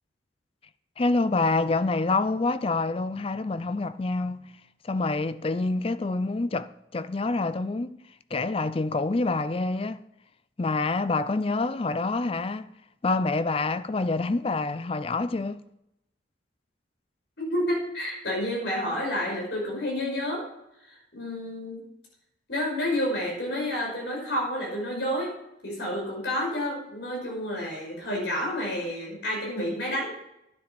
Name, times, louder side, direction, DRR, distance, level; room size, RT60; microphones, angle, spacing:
voice 1, 1.0-4.5 4.8-8.0 8.3-10.0 10.6-12.7 13.0-15.6, left 3 dB, 30° left, 0.4 m, -27 dB
voice 2, 17.4-20.4 20.8-21.8 22.5-25.3 25.6-30.1, left 1 dB, 60° left, 5.4 m, -30 dB
10.5 x 9.7 x 5.2 m
head